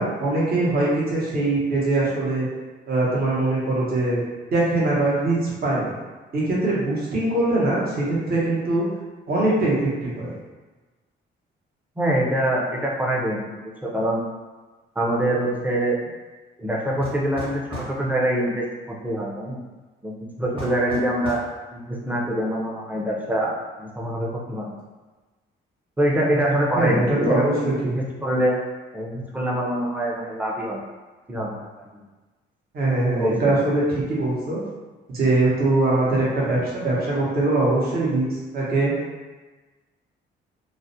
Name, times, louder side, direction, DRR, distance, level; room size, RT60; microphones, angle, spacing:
voice 1, 0.0-2.5 2.9-4.2 4.5-5.9 6.3-8.9 9.3-10.3 26.7-27.9 32.7-34.6 35.1-38.9, right 2 dB, 50° right, -6 dB, 0.8 m, -22 dB
voice 2, 12.0-14.2 15.0-15.9 16.6-17.6 17.9-19.6 20.0-21.4 21.7-24.7 26.0-28.6 28.9-30.8 31.3-31.6 31.9-32.0 33.1-33.5, right 1 dB, 10° right, -3 dB, 0.5 m, -24 dB
sound 1, 17.0-18.0 20.6-21.5, equal, 25° right, 1.1 m, -34 dB
2.4 x 2.1 x 2.6 m, 1.3 s
cardioid pair, 90°, 20 cm